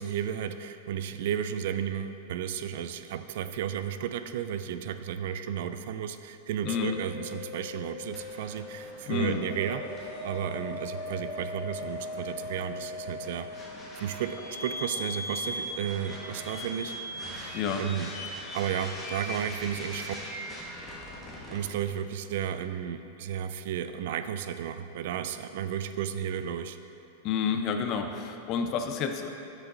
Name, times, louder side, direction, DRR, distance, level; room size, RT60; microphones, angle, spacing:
voice 1, 0.0-9.9 10.2-13.5 14.0-16.9 17.3-18.1 18.5-20.2 21.5-26.8, right 9 dB, 65° right, 10 dB, 0.3 m, -33 dB
voice 2, 6.6-7.0 9.1-9.4 17.5-17.8 27.2-29.3, left 6 dB, 40° left, 6 dB, 0.5 m, -29 dB
sound 1, 6.6-21.7, left 1 dB, 10° left, 1.2 m, -39 dB
sound 2, 8.3-20.4, left 1 dB, 75° left, 1.1 m, -47 dB
6.3 x 5.0 x 4.1 m, 2.8 s
supercardioid pair, 140°, 0 cm